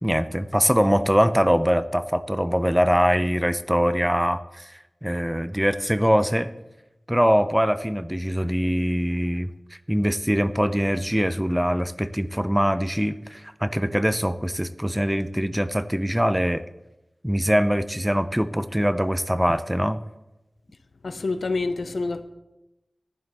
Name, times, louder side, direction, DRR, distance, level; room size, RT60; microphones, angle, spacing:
voice 1, 0.0-4.7 5.0-6.5 7.1-9.5 9.9-16.6 17.2-20.0, equal, 5° right, 0.4 m, -23 dB
voice 2, 21.0-22.2, left 3 dB, 90° left, 0.6 m, -27 dB
11.0 x 11.0 x 3.4 m
wide cardioid pair, 70°, 0 cm